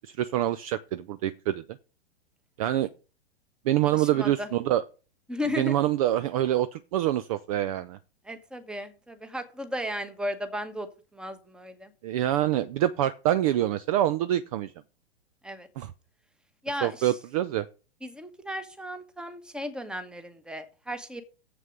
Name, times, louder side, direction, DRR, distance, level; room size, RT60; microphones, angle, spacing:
voice 1, 0.0-1.6 2.6-2.9 3.7-4.8 5.6-8.0 12.0-14.7 15.8-15.9 16.8-17.7, right 13 dB, 35° right, 14 dB, 0.5 m, -26 dB
voice 2, 3.8-4.5 5.3-5.7 8.2-11.9 15.4-15.7 16.6-17.2 18.0-21.2, equal, 5° right, 10 dB, 1.1 m, -35 dB
7.7 x 6.2 x 6.4 m, 0.35 s
figure-of-eight pair, 105°, 33 cm